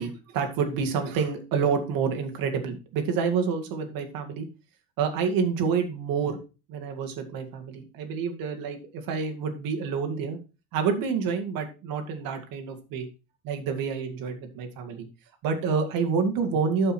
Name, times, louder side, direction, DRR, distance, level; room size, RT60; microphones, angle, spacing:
voice 1, 0.0-4.5 5.0-6.4 6.7-10.4 10.7-13.1 13.4-15.1 15.4-16.9, right 5 dB, 60° right, 5 dB, 2.1 m, -28 dB
12.5 x 5.5 x 4.4 m, 0.31 s
cardioid pair, 160°, 39 cm